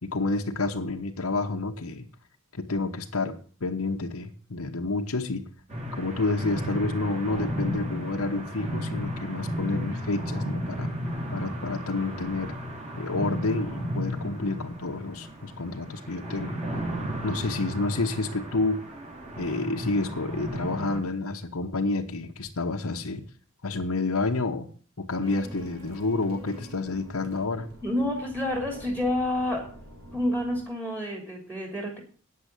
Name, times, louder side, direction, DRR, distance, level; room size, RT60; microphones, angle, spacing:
voice 1, 0.0-2.1 2.5-3.4 3.6-5.4 5.9-10.9 11.3-12.5 12.9-16.6 17.2-18.9 19.4-23.2 23.6-24.7 25.0-27.7, left 3 dB, 75° left, 2 dB, 1.1 m, -29 dB
sound 1, 5.7-21.0, equal, 30° right, 4.2 m, -34 dB
sound 2, 25.2-30.6, right 1 dB, 70° right, 3.8 m, -46 dB
voice 2, 27.8-29.7 30.1-32.0, left 1 dB, 10° right, 0 dB, 2.9 m, -28 dB
9.6 x 7.6 x 8.2 m, 0.42 s
head